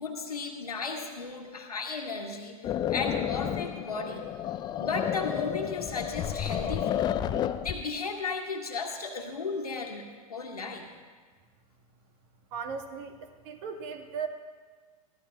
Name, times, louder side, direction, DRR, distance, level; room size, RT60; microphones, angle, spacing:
voice 1, 0.0-2.6 2.9-4.2 4.8-7.1 7.6-10.9, left 4 dB, 80° left, 1 dB, 1.8 m, -35 dB
sound 1, 2.6-7.8, left 10 dB, 20° left, 0.5 m, -31 dB
voice 2, 12.5-14.3, right 6 dB, 45° right, 5 dB, 1.6 m, -37 dB
22.0 x 16.0 x 2.3 m, 1.5 s
figure-of-eight pair, 95°, 19 cm